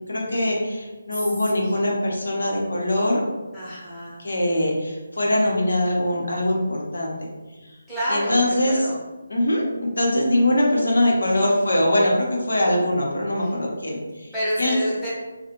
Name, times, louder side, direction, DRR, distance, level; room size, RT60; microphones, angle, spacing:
voice 1, 0.0-3.2 4.2-7.1 7.6-7.8 8.1-8.9 9.3-14.7, left 1 dB, 70° left, -2 dB, 0.7 m, -22 dB
voice 2, 3.5-4.2 7.9-8.9 13.4-13.5 14.3-15.1, equal, 5° left, -11 dB, 0.8 m, -28 dB
2.4 x 2.1 x 2.9 m, 1.2 s
figure-of-eight pair, 150°, 0 cm